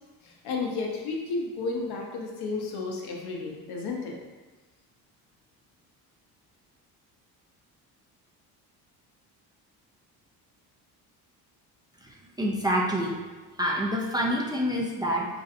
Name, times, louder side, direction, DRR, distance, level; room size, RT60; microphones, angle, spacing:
voice 1, 0.2-4.2, left 3 dB, 75° left, -1 dB, 0.7 m, -32 dB
voice 2, 12.4-13.1 13.6-15.3, equal, 10° right, -3 dB, 0.4 m, -26 dB
3.1 x 2.6 x 2.6 m, 1.2 s
supercardioid pair, 80°, 39 cm